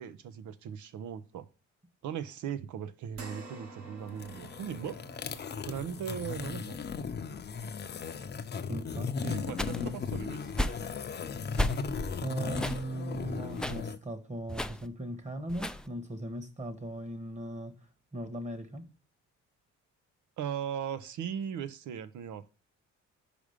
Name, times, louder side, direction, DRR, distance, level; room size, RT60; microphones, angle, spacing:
voice 1, 0.0-1.4 2.0-5.0 5.7-6.8 9.2-10.7 20.4-22.5, right 8 dB, 75° right, 0.8 m, -38 dB
sound 1, 3.1-11.8 12.2-12.3 13.8-13.9, right 3 dB, 55° right, 1.5 m, -53 dB
sound 2, 4.1-14.0, left 5 dB, 35° left, 0.7 m, -37 dB
voice 2, 8.7-9.9 12.2-17.7 18.1-18.9, right 1 dB, 25° right, 1.5 m, -38 dB
sound 3, 9.6-10.0 10.5-10.9 11.5-12.2 12.5-12.8 13.5-13.8 14.5-14.9 15.5-15.9, left 1 dB, 5° left, 0.4 m, -34 dB
5.1 x 5.1 x 5.1 m
cardioid pair, 90°, 30 cm